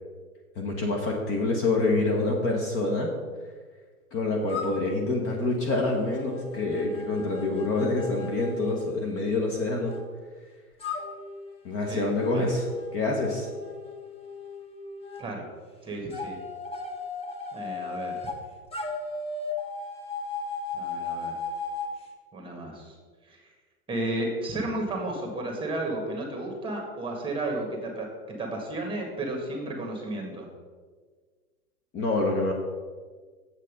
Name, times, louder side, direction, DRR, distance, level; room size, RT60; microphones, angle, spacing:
voice 1, 0.6-3.1 4.1-9.9 11.6-12.6 12.9-13.5 31.9-32.5, left 2 dB, 30° left, 0 dB, 1.2 m, -26 dB
sound 1, 4.5-10.0 10.8-15.2 16.1-18.4 18.7-21.9, left 4 dB, 15° left, 0.9 m, -37 dB
voice 2, 11.9-12.5 15.2-15.5 15.8-16.4 17.5-18.3 20.7-21.3 22.3-23.0 23.3-23.4 23.9-30.5, right 2 dB, 10° right, 2 dB, 1.9 m, -33 dB
7.5 x 6.4 x 5.3 m, 1.5 s
hypercardioid pair, 110°, 47 cm